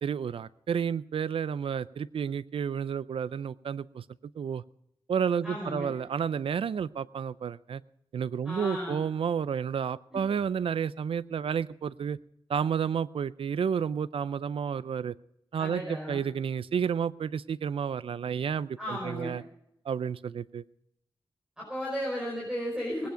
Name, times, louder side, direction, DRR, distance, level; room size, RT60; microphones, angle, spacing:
voice 1, 0.0-4.0 4.4-4.6 5.1-7.8 8.1-12.2 12.5-15.1 15.5-19.4 19.9-20.6, right 7 dB, 80° right, 18 dB, 0.5 m, -31 dB
voice 2, 5.4-5.9 8.4-9.0 10.1-10.2 15.6-16.2 18.8-19.4 21.6-23.1, equal, 10° right, -4 dB, 5.0 m, -34 dB
19.5 x 9.4 x 5.1 m, 0.80 s
wide cardioid pair, 80°, 9 cm